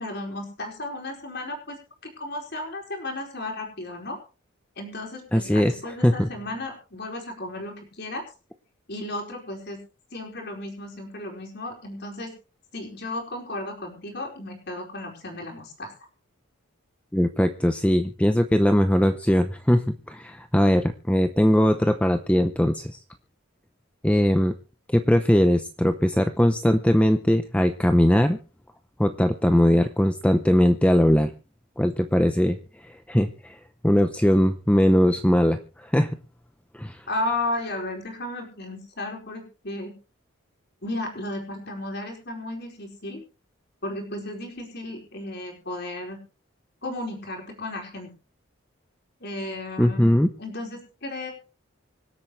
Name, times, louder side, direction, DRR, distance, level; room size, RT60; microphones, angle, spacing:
voice 1, 0.0-1.8 2.0-4.2 4.8-8.2 8.9-9.8 10.1-12.3 12.7-15.9 37.1-39.9 40.8-43.2 43.8-46.2 46.8-48.1 49.2-50.1 50.4-51.3, left 1 dB, 50° left, 2 dB, 4.6 m, -34 dB
voice 2, 5.3-6.3 17.1-23.0 24.0-24.6 24.9-28.4 29.0-31.3 31.8-32.6 32.8-33.6 33.8-36.1 36.7-37.0 49.8-50.3, equal, 5° left, 7 dB, 0.6 m, -20 dB
25.5 x 8.6 x 3.2 m, 0.35 s
head